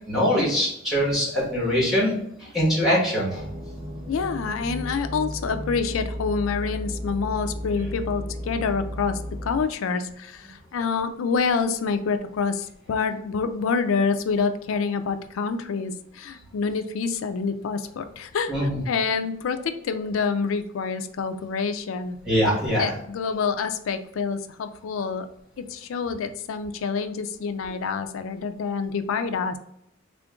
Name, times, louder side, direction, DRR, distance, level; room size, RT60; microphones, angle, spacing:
voice 1, 0.1-3.4 18.5-18.8 22.3-22.9, equal, ahead, -7 dB, 1.5 m, -23 dB
sound 1, 3.3-9.6, equal, 30° right, 0.7 m, -34 dB
voice 2, 4.1-22.2 22.8-25.3 25.6-29.6, left 5 dB, 85° left, 9 dB, 0.4 m, -27 dB
3.6 x 2.5 x 3.5 m, 0.76 s
head